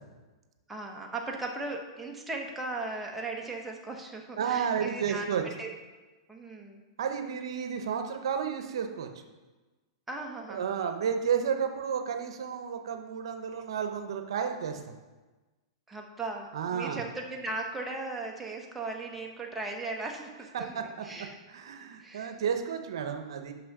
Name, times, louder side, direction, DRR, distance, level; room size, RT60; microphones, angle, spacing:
voice 1, 0.7-5.7 6.3-6.8 10.1-10.7 15.9-21.4 22.0-22.3, right 2 dB, 10° right, 0 dB, 1.1 m, -37 dB
voice 2, 4.4-5.4 7.0-9.2 10.5-15.0 16.5-17.0 20.5-21.0 21.5-23.5, right 7 dB, 75° right, 6 dB, 0.8 m, -32 dB
6.1 x 5.8 x 6.0 m, 1.2 s
hypercardioid pair, 135°, 3 cm